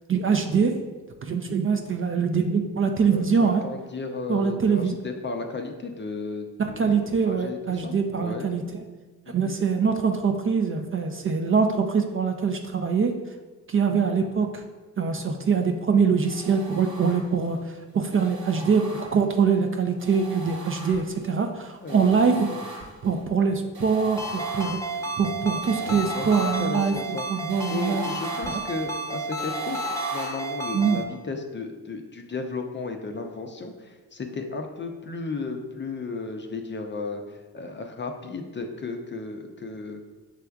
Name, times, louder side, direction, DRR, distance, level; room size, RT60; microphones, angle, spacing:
voice 1, 0.1-0.7 1.2-3.6 4.3-4.9 6.6-8.6 9.3-13.1 13.7-14.6 15.0-22.5 23.0-24.8 25.2-28.0 28.5-28.6 30.7-31.0, right 5 dB, 30° right, 5 dB, 0.4 m, -23 dB
voice 2, 3.1-6.8 7.2-8.5 9.3-9.6 21.8-22.7 25.9-27.3 27.7-40.1, left 3 dB, 25° left, 4 dB, 0.5 m, -34 dB
sound 1, 16.3-17.5 18.1-19.5 20.0-21.3 21.9-23.2 23.7-30.3, right 2 dB, 80° right, 1.5 m, -38 dB
Ringtone, 24.2-31.0, right 1 dB, 5° left, 0.9 m, -32 dB
6.0 x 3.3 x 2.3 m, 1.3 s
hypercardioid pair, 50°, 45 cm